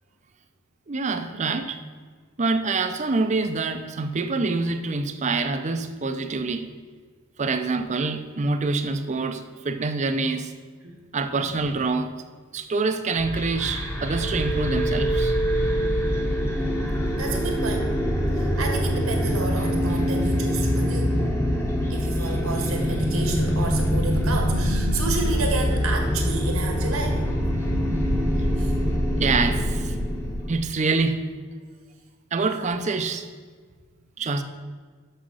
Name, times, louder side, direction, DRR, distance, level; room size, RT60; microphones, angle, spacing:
voice 1, 0.9-1.8 2.4-6.7 7.4-10.5 11.1-12.1 12.5-15.4 29.2-30.0 30.5-31.3 32.3-33.2 34.2-34.4, right 3 dB, 35° right, 8 dB, 0.5 m, -26 dB
sound 1, 13.2-30.6, equal, 10° left, 0.9 m, -24 dB
voice 2, 17.2-17.9 18.3-21.2 21.9-27.2 28.6-28.7 32.6-32.8, right 3 dB, 80° right, 2 dB, 1.6 m, -31 dB
6.3 x 6.3 x 6.2 m, 1.5 s
head